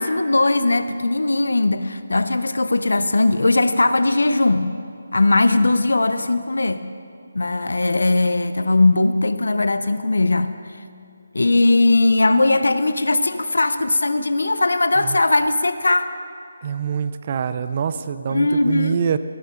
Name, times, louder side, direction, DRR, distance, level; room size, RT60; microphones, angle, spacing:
voice 1, 0.0-4.7 5.1-6.8 7.3-10.5 11.3-16.1 18.3-19.0, left 2 dB, 85° left, 11 dB, 0.7 m, -19 dB
voice 2, 16.6-19.2, right 7 dB, 35° right, 12 dB, 0.5 m, -25 dB
18.0 x 11.0 x 3.9 m, 2.4 s
figure-of-eight pair, 165°, 0 cm